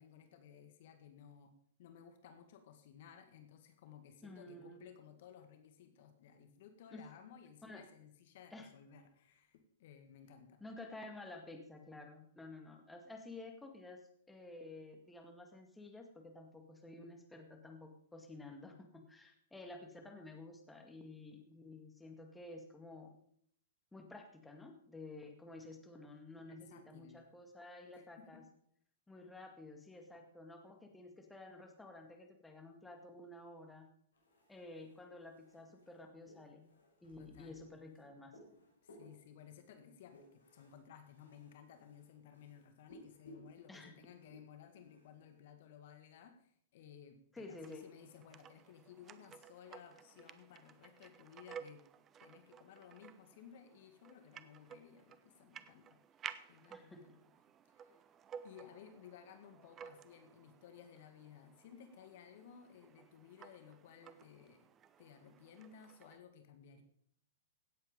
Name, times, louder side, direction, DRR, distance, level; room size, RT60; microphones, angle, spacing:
voice 1, 0.0-1.5 1.8-10.6 26.5-27.2 27.9-28.4 37.2-37.7 38.8-51.8 52.2-56.0 56.5-57.3 57.7-58.0 58.4-64.7 65.0-66.8, left 8 dB, 60° left, 7 dB, 1.9 m, -58 dB
voice 2, 4.2-4.8 6.9-7.0 7.6-7.8 8.5-8.7 10.6-23.2 23.9-28.4 29.1-33.9 34.5-38.3 43.7-43.9 47.3-47.9 56.7-57.2, left 2 dB, 5° left, 3 dB, 2.1 m, -52 dB
sound 1, 34.1-45.4, left 1 dB, 85° left, 5.8 m, -62 dB
sound 2, 47.6-66.2, right 8 dB, 25° right, 0.7 m, -55 dB
16.5 x 8.2 x 5.3 m, 0.65 s
hypercardioid pair, 115°, 0 cm